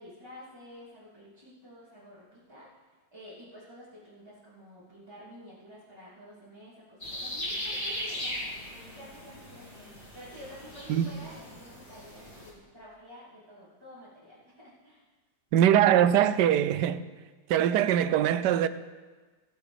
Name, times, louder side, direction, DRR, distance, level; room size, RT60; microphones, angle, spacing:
voice 1, 0.0-2.8 3.1-15.0, left 1 dB, 15° right, 3.0 m, -50 dB
sound 1, 7.0-12.5, equal, 30° left, 3.3 m, -38 dB
voice 2, 15.5-17.0 17.5-18.7, right 10 dB, 85° right, 1.2 m, -22 dB
17.0 x 8.0 x 5.0 m
omnidirectional pair, 1.8 m